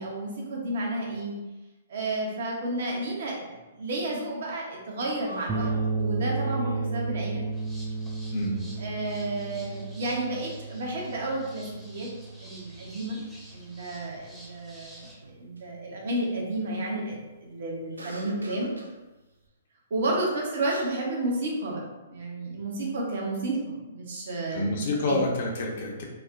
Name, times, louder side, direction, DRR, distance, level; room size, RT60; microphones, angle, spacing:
voice 1, 0.0-1.3 1.9-7.4 8.8-12.1 12.4-13.2 13.5-15.1 15.3-18.7 19.9-21.8 22.1-25.2, right 2 dB, 60° right, -2 dB, 0.8 m, -31 dB
sound 1, 3.6-3.7 4.0-4.1 5.0-7.1 10.6-12.2 12.6-13.4 15.2-15.6 17.9-19.0 20.3-20.4 20.7-21.1, right 2 dB, 85° right, 0.4 m, -45 dB
sound 2, 5.5-14.0, right 3 dB, 20° right, 0.3 m, -33 dB
sound 3, 7.5-15.2, equal, ahead, 0.7 m, -51 dB
voice 2, 24.5-26.0, left 2 dB, 55° left, -1 dB, 0.7 m, -28 dB
3.2 x 2.1 x 2.5 m, 1.1 s
hypercardioid pair, 120°, 0 cm